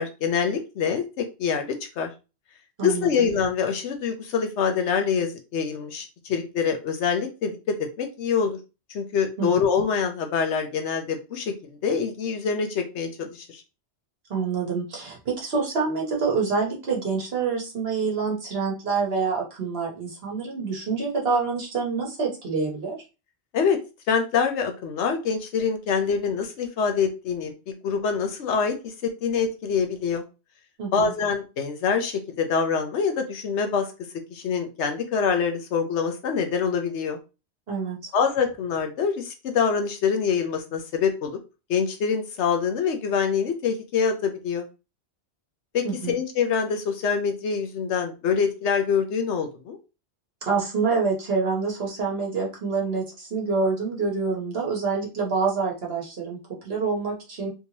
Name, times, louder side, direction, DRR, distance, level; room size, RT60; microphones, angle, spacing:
voice 1, 0.0-2.1 2.8-8.6 8.9-13.6 23.5-23.8 24.1-30.2 30.9-33.9 34.3-37.2 38.1-41.4 41.7-44.7 45.7-49.8, left 6 dB, 85° left, 5 dB, 1.0 m, -25 dB
voice 2, 2.8-3.3 9.4-9.5 14.3-23.0 30.8-31.1 37.7-38.1 45.8-46.1 50.4-56.4 56.6-57.5, right 4 dB, 60° right, -1 dB, 1.3 m, -26 dB
3.5 x 2.9 x 2.9 m, 0.30 s
omnidirectional pair, 1.2 m